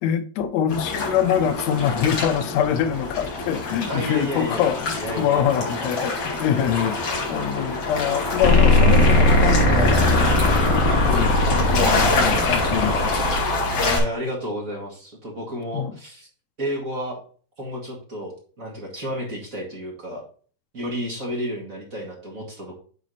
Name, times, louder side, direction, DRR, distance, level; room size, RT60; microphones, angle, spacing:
voice 1, 0.0-13.1 15.7-15.9, left 9 dB, 85° left, 1.5 m, -25 dB
sound 1, 0.7-14.0, left 3 dB, 50° left, 3.8 m, -26 dB
voice 2, 3.9-5.9 13.8-16.3 16.6-17.2 17.6-20.2 20.7-22.8, equal, 30° right, 1.8 m, -31 dB
sound 2, 8.4-13.4, left 1 dB, 30° left, 1.6 m, -18 dB
9.4 x 4.2 x 4.0 m
omnidirectional pair, 4.2 m